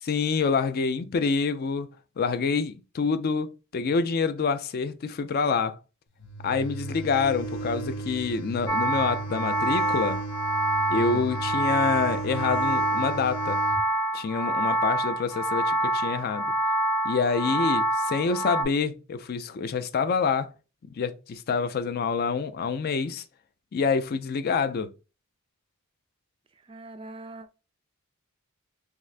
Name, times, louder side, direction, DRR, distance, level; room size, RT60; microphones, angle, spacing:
voice 1, 0.1-5.8 6.4-10.2 10.9-13.6 14.1-16.5 17.0-20.5 20.9-23.2 23.7-24.9, left 5 dB, 45° left, 0.4 m, -27 dB
sound 1, 6.2-13.8, right 3 dB, 70° left, 0.9 m, -35 dB
sound 2, 8.7-18.6, right 1 dB, 10° left, 0.9 m, -27 dB
voice 2, 26.7-27.5, right 2 dB, 25° right, 0.3 m, -41 dB
3.6 x 2.4 x 3.2 m
head